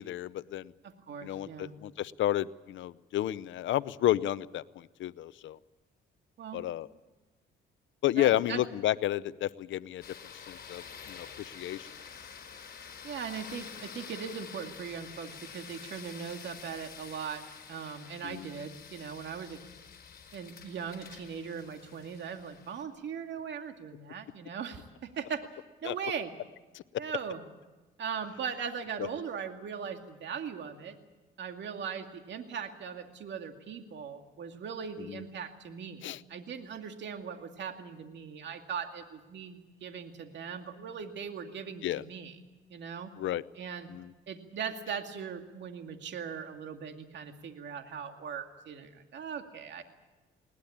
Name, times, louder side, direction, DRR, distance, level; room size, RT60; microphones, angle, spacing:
voice 1, 0.0-0.7 1.2-5.6 6.5-6.9 8.0-10.0 10.5-10.8 11.1-11.9 18.2-18.5 25.8-25.9 26.7-26.8 35.1-35.2 36.0-36.2 41.8-42.0 43.2-43.4 43.9-44.0, left 13 dB, 75° left, 17 dB, 0.7 m, -31 dB
voice 2, 0.8-1.7 6.4-6.6 8.2-8.6 13.0-17.4 17.7-19.6 20.3-25.4 25.8-26.3 27.0-27.4 28.0-31.0 31.4-42.4 42.7-43.1 43.5-43.9 44.3-49.8, right 7 dB, 65° right, 5 dB, 2.3 m, -39 dB
sound 1, 10.0-22.8, left 7 dB, 50° left, 4.8 m, -48 dB
21.0 x 19.5 x 8.6 m, 1.2 s
cardioid pair, 90°, 20 cm